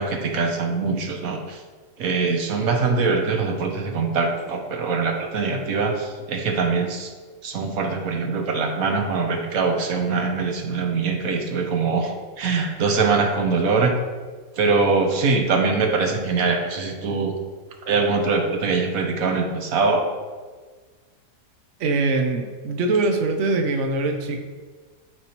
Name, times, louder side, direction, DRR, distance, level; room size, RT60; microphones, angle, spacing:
voice 1, 0.0-1.6 2.0-7.1 7.4-13.9 14.6-17.4 17.9-20.1, right 4 dB, 80° right, 3 dB, 1.3 m, -23 dB
voice 2, 21.8-24.4, right 3 dB, 65° right, 4 dB, 1.0 m, -22 dB
12.5 x 4.7 x 3.0 m, 1.5 s
omnidirectional pair, 1.5 m